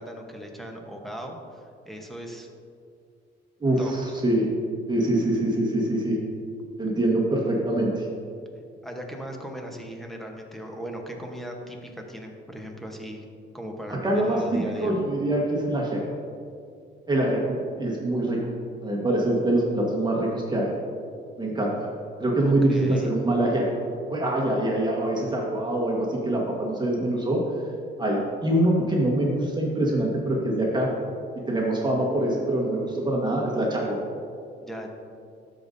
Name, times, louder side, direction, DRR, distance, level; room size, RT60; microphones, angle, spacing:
voice 1, 0.0-1.6 1.8-2.5 3.8-3.9 8.8-13.2 13.5-14.9 22.4-23.1 34.6-34.9, equal, ahead, 1 dB, 1.1 m, -38 dB
voice 2, 3.6-4.5 4.9-6.2 6.8-8.1 14.0-16.0 17.1-18.4 18.8-20.7 21.4-21.7 22.2-23.7 24.1-27.4 28.0-30.9 31.5-34.0, right 1 dB, 20° right, -3 dB, 1.5 m, -24 dB
13.0 x 5.2 x 2.7 m, 2.3 s
cardioid pair, 90°, 20 cm